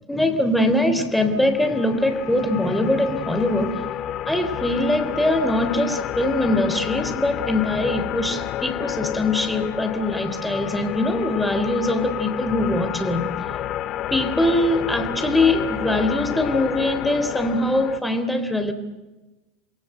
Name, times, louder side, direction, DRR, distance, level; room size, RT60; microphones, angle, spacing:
voice 1, 0.1-3.8 4.3-13.3 14.1-18.7, left 1 dB, 5° left, 7 dB, 3.6 m, -22 dB
sound 1, 1.2-18.0, left 12 dB, 45° left, 1.4 m, -30 dB
29.0 x 22.0 x 7.9 m, 1.1 s
hypercardioid pair, 85°, 0 cm